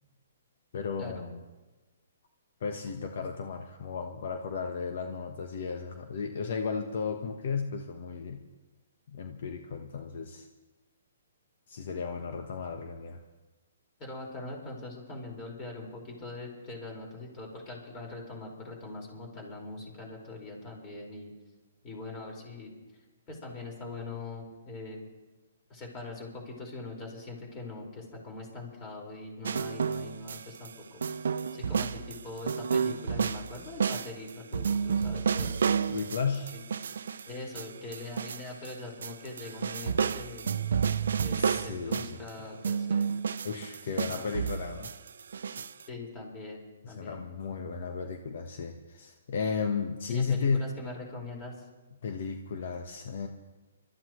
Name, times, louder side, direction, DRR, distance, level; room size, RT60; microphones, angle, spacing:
voice 1, 0.7-1.4 2.6-8.4 9.1-10.5 11.7-13.2 35.9-36.5 41.4-42.2 43.4-44.9 46.8-50.7 52.0-53.3, left 5 dB, 60° left, 4 dB, 1.3 m, -34 dB
voice 2, 14.0-21.3 21.8-22.7 23.3-25.0 25.7-31.0 31.5-35.6 36.5-36.6 37.2-40.5 41.2-43.1 43.9-44.3 45.9-47.2 50.1-51.7, left 2 dB, 25° left, 0 dB, 5.3 m, -42 dB
sound 1, 29.4-30.7 31.0-38.7 39.0-42.3 42.6-45.8, right 6 dB, 75° right, 0.6 m, -31 dB
25.5 x 14.0 x 3.2 m, 1.2 s
hypercardioid pair, 140°, 0 cm